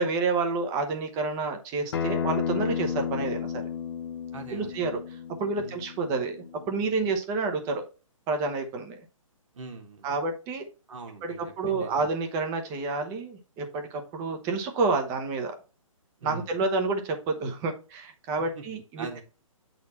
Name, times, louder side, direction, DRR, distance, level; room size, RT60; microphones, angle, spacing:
voice 1, 0.0-3.6 4.5-6.4 6.7-7.8 8.3-9.0 10.0-10.7 11.2-15.5 16.2-19.1, right 3 dB, 20° right, 5 dB, 1.0 m, -29 dB
Acoustic guitar, 1.9-7.1, left 8 dB, 45° left, 0.7 m, -33 dB
voice 2, 4.3-4.8 5.6-5.8 9.5-10.1 10.9-12.1 16.2-16.5 18.4-19.2, right 3 dB, 65° right, 3 dB, 1.9 m, -42 dB
8.4 x 4.1 x 4.3 m, 0.35 s
hypercardioid pair, 160°, 18 cm